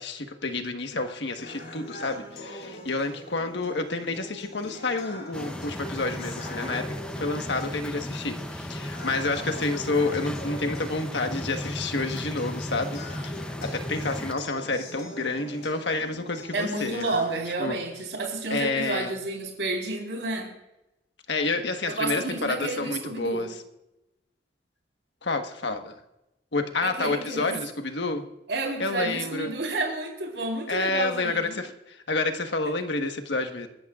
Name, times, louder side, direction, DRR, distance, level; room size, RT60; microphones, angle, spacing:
voice 1, 0.0-17.0 17.6-17.8 18.5-19.1 21.3-23.6 25.2-25.9 26.5-28.3 28.8-29.5 30.7-33.7, left 3 dB, 75° left, 6 dB, 1.4 m, -29 dB
sound 1, 1.4-17.4, left 1 dB, 55° left, 3.7 m, -42 dB
sound 2, 5.3-14.3, equal, 5° left, 0.7 m, -35 dB
voice 2, 16.5-20.5 21.9-23.5 26.8-27.6 28.5-31.6, right 2 dB, 80° right, 1 dB, 4.1 m, -30 dB
24.0 x 13.0 x 2.5 m, 0.93 s
head